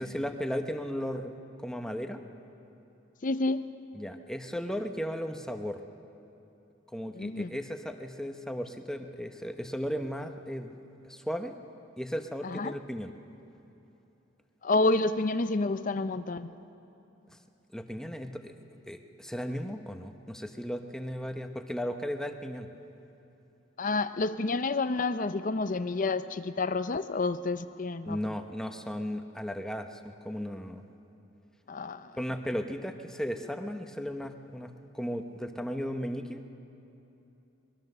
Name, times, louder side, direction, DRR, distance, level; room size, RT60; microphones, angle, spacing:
voice 1, 0.0-1.3 1.6-2.2 3.9-5.8 6.9-10.7 11.0-11.6 12.0-13.1 17.7-18.5 18.9-22.7 28.0-30.0 30.2-30.8 32.2-36.4, equal, 5° left, 6 dB, 0.8 m, -35 dB
voice 2, 3.2-3.6 7.2-7.5 12.4-12.7 14.6-16.5 23.8-28.2 31.7-32.1, left 3 dB, 40° left, 12 dB, 0.6 m, -29 dB
24.5 x 21.0 x 6.7 m, 3.0 s
head